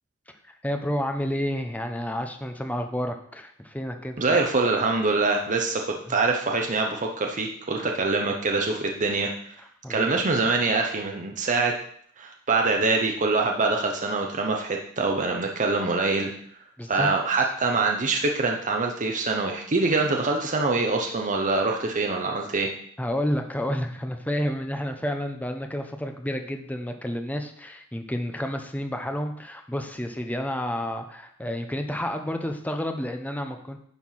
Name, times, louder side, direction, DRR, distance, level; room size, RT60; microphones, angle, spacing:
voice 1, 0.4-4.2 6.1-6.2 9.8-10.1 16.8-17.1 23.0-33.8, equal, 5° left, 5 dB, 0.9 m, -30 dB
voice 2, 4.2-9.6 9.9-11.7 12.2-16.3 16.9-22.7, right 3 dB, 35° right, 2 dB, 0.9 m, -24 dB
10.5 x 4.6 x 5.7 m, 0.64 s
head